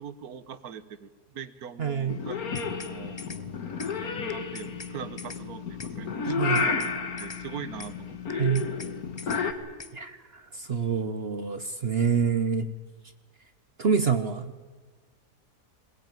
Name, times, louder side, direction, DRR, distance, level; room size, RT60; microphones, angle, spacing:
voice 1, 0.0-3.3 4.0-6.8 7.2-8.5, right 7 dB, 65° right, 14 dB, 1.5 m, -42 dB
voice 2, 1.8-2.2 6.2-6.6 8.4-8.7 9.2-9.5 9.9-12.7 13.8-14.7, right 6 dB, 45° right, 11 dB, 0.9 m, -27 dB
Purr / Meow, 2.1-9.5, left 5 dB, 65° left, 2.0 m, -32 dB
sound 1, 2.3-2.9 3.2-3.4 3.8-3.9 4.3-4.9 5.2-5.4 5.8-5.9 6.3-6.9 7.2-7.4 7.8-7.9 8.3-8.9 9.2-9.4 9.8-9.9, left 4 dB, 30° left, 0.5 m, -43 dB
21.5 x 19.0 x 9.1 m, 1.4 s
omnidirectional pair, 1.7 m